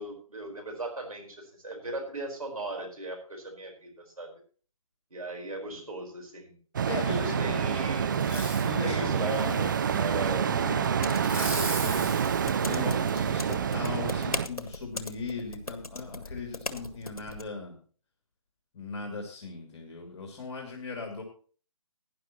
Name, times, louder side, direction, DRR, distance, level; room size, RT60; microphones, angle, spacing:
voice 1, 0.0-4.3 5.1-6.6 7.2-8.3 8.8-9.5 10.0-10.6, right 2 dB, 75° right, 2 dB, 4.7 m, -37 dB
sound 1, 6.7-14.5, right 7 dB, 35° right, 0.5 m, -28 dB
voice 2, 6.9-7.8 8.3-12.2 12.6-17.8 18.7-21.2, left 3 dB, 50° left, 1 dB, 2.8 m, -38 dB
Fireworks, 8.1-8.7 9.3-10.3 11.1-13.5 14.0-14.1, right 2 dB, 5° right, 2.1 m, -39 dB
sound 2, 10.1-17.4, left 2 dB, 75° left, 1.5 m, -40 dB
17.5 x 10.5 x 3.0 m, 0.42 s
figure-of-eight pair, 140°, 19 cm